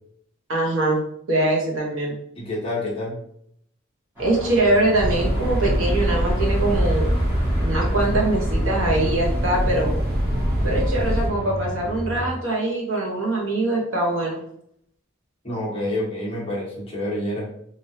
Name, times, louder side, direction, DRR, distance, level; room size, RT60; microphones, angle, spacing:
voice 1, 0.5-1.0 1.3-2.1 4.2-7.1 7.6-9.9 10.6-14.4, right 2 dB, 70° right, -2 dB, 1.0 m, -23 dB
voice 2, 2.4-3.2 15.4-17.5, left 1 dB, 25° left, -5 dB, 1.0 m, -28 dB
Car passing by / Traffic noise roadway noise / Engine, 4.2-12.3, equal, 10° right, 1.2 m, -32 dB
sound 1, 4.9-11.3, equal, 50° right, 0.8 m, -23 dB
3.2 x 2.6 x 2.7 m, 0.69 s
head